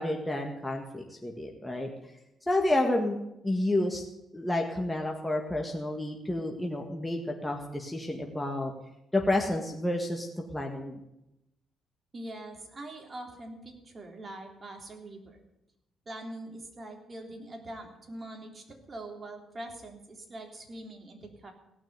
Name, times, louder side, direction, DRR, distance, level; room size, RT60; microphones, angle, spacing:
voice 1, 0.0-1.9 2.5-3.2 3.4-4.0 4.3-8.7 9.1-10.3 10.5-11.0, left 1 dB, 10° left, 1 dB, 1.7 m, -30 dB
voice 2, 12.1-15.4 16.0-21.5, right 1 dB, 30° right, 2 dB, 3.4 m, -43 dB
17.0 x 6.2 x 9.5 m, 0.88 s
cardioid pair, 90°, 0 cm